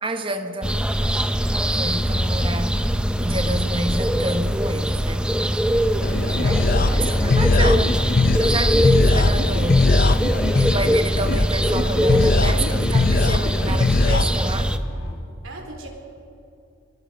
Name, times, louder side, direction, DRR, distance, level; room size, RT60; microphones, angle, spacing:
voice 1, 0.0-0.8 1.7-2.8 3.2-5.3 6.4-8.1 8.4-9.9 10.5-14.7, right 2 dB, 25° right, 1.1 m, -29 dB
sound 1, 0.6-14.8, equal, 5° right, 0.6 m, -22 dB
sound 2, 2.0-15.1, equal, 75° left, 3.8 m, -31 dB
voice 2, 5.6-6.9 15.4-15.9, right 1 dB, 70° right, 4.0 m, -37 dB
sound 3, 6.0-14.2, left 3 dB, 40° left, 0.6 m, -20 dB
24.0 x 23.5 x 5.2 m
head